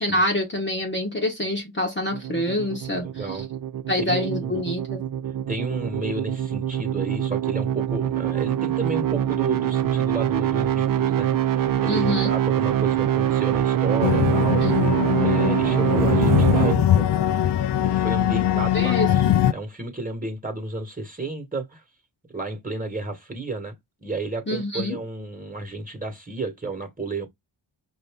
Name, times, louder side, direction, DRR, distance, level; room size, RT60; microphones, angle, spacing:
voice 1, 0.0-3.4 3.9-5.0 11.9-12.3 14.6-14.7 18.3-19.4 24.5-25.0, left 1 dB, 25° left, 0.9 m, -26 dB
sound 1, 2.1-16.7, right 10 dB, 45° right, 0.5 m, -24 dB
voice 2, 3.0-3.4 4.0-4.6 5.5-14.6 15.2-17.1 17.8-21.8 22.3-23.7 24.0-27.3, right 3 dB, 15° right, 1.4 m, -32 dB
sound 2, 14.0-19.5, left 11 dB, 55° left, 0.5 m, -21 dB
5.5 x 2.6 x 3.5 m
wide cardioid pair, 110°, 49 cm